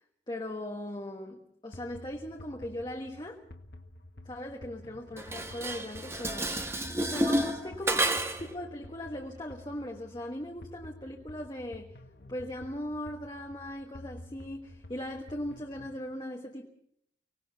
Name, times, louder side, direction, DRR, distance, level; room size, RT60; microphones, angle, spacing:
voice 1, 0.3-3.4 4.2-6.5 7.0-11.9 12.3-16.7, left 1 dB, 25° left, 1 dB, 1.4 m, -39 dB
sound 1, 1.7-16.0, left 1 dB, 70° left, 1.7 m, -50 dB
Dishes pots and pans, 5.2-8.5, right 1 dB, 15° right, 1.3 m, -30 dB
24.5 x 18.5 x 5.8 m, 0.70 s
head